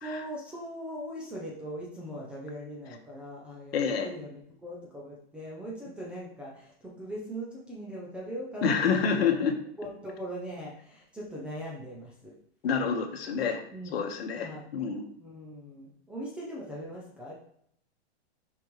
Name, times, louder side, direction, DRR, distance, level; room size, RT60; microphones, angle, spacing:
voice 1, 0.0-9.4 9.8-12.3 13.7-14.0 14.4-14.7 15.2-17.3, right 1 dB, 5° right, -4 dB, 0.4 m, -40 dB
voice 2, 3.7-4.1 8.6-9.5 12.6-13.6 13.9-15.0, left 6 dB, 65° left, 4 dB, 1.3 m, -28 dB
5.9 x 5.2 x 3.1 m, 0.70 s
hypercardioid pair, 160°, 32 cm